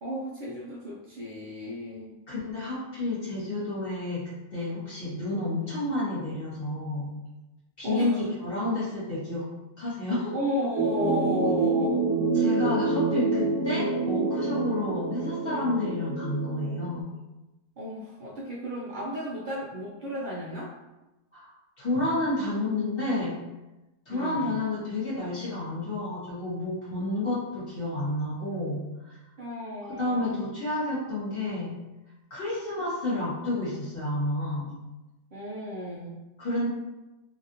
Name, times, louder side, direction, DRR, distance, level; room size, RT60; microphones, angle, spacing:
voice 1, 0.0-2.2 7.8-8.2 10.3-12.0 17.8-20.7 24.1-24.6 29.4-30.4 35.3-36.2, equal, 80° right, -5 dB, 0.4 m, -34 dB
voice 2, 2.3-7.2 7.8-9.5 9.8-10.3 12.3-17.1 21.3-21.5 21.8-23.4 24.1-29.2 30.0-31.8 32.3-34.8 36.4-36.7, left 2 dB, 45° left, -9 dB, 1.3 m, -30 dB
sound 1, 10.8-17.0, right 3 dB, 65° right, 0.9 m, -27 dB
2.9 x 2.5 x 2.7 m, 1.0 s
omnidirectional pair, 1.4 m